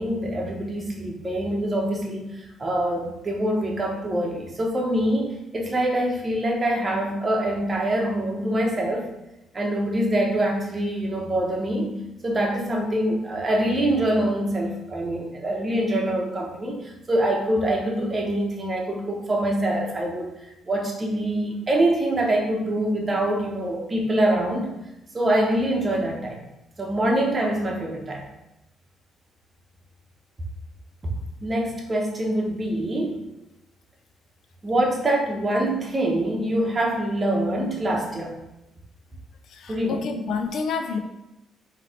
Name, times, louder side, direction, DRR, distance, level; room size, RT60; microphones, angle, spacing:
voice 1, 0.0-9.1 9.5-11.9 12.2-20.3 20.7-24.7 25.1-26.4 26.8-28.2 31.4-33.2 34.6-38.3 39.7-40.0, right 1 dB, 30° right, 0 dB, 1.0 m, -24 dB
voice 2, 39.5-41.0, left 5 dB, 70° left, 6 dB, 0.5 m, -29 dB
3.9 x 2.9 x 4.3 m, 0.93 s
cardioid pair, 90°, 0 cm